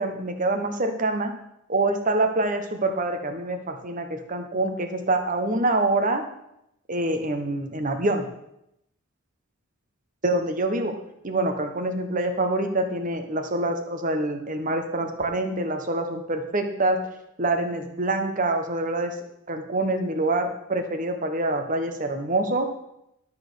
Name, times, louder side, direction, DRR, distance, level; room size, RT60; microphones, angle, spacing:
voice 1, 0.0-1.3 1.7-6.2 6.9-8.3 10.2-10.9 11.2-17.0 17.4-19.1 19.5-22.7, right 2 dB, 40° right, 6 dB, 1.1 m, -25 dB
12.0 x 4.3 x 6.8 m, 0.81 s
head